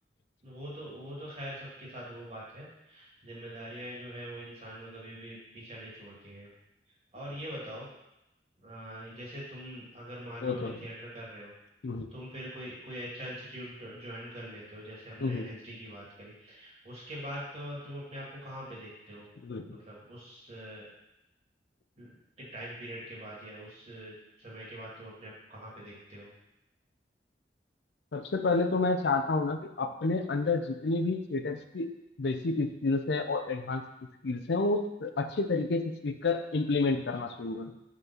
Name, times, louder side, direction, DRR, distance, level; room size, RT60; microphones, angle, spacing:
voice 1, 0.4-6.5 7.1-7.9 8.6-11.5 12.1-19.3 19.7-20.9 22.0-26.3, equal, 35° right, -6 dB, 2.4 m, -43 dB
voice 2, 10.4-10.8 11.8-12.1 15.2-15.5 19.4-19.8 28.1-31.9 32.2-33.8 34.2-37.7, left 3 dB, 70° left, 7 dB, 0.5 m, -30 dB
5.4 x 4.1 x 5.8 m, 0.88 s
head